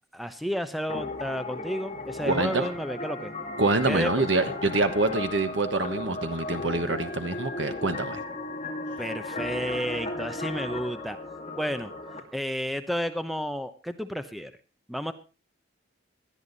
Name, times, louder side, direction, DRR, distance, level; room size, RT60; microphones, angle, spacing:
voice 1, 0.1-3.3 3.8-4.1 9.0-11.2 11.6-11.9 12.3-14.5 14.9-15.1, equal, ahead, 10 dB, 0.8 m, -31 dB
sound 1, 0.9-12.2, left 2 dB, 35° left, 2.6 m, -35 dB
voice 2, 2.2-2.7 3.6-8.2, right 3 dB, 70° right, 8 dB, 1.3 m, -26 dB
18.5 x 11.5 x 4.0 m, 0.32 s
head